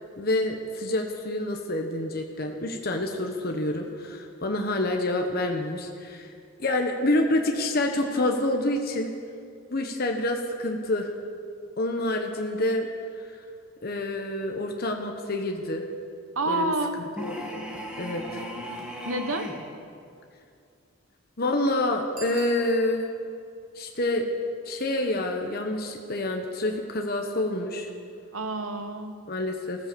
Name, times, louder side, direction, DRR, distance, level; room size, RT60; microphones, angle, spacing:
voice 1, 0.2-6.3 6.6-9.1 9.7-11.1 11.8-12.9 13.2-13.4 13.8-15.8 16.5-17.6 18.0-18.4 21.4-23.1 23.7-24.2 24.6-27.9 29.3-29.9, left 1 dB, 45° left, 3 dB, 1.1 m, -27 dB
voice 2, 16.3-17.0 19.0-19.6 28.3-29.3, right 2 dB, 80° right, 8 dB, 1.2 m, -28 dB
sound 1, 17.2-19.7, equal, 5° right, 2.1 m, -37 dB
Bicycle bell, 22.1-23.3 28.7-28.8, right 3 dB, 40° right, 3.5 m, -43 dB
14.5 x 14.5 x 6.9 m, 2.4 s
head